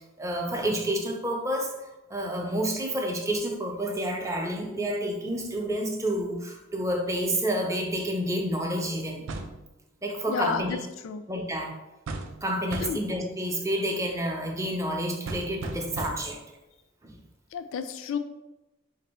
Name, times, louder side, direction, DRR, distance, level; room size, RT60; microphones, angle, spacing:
voice 1, 0.2-1.7 2.1-9.2 10.0-10.8 11.3-11.7 12.4-16.4 17.0-17.1, right 1 dB, 15° right, 1 dB, 0.5 m, -29 dB
sound 1, 9.3-9.6 12.1-12.4 12.7-13.1 15.3-16.4, right 2 dB, 70° right, 0.4 m, -36 dB
voice 2, 10.3-10.8 11.0-11.3 12.8-13.0 17.5-18.2, left 6 dB, 75° left, 9 dB, 0.3 m, -31 dB
2.9 x 2.6 x 4.2 m, 1.0 s
head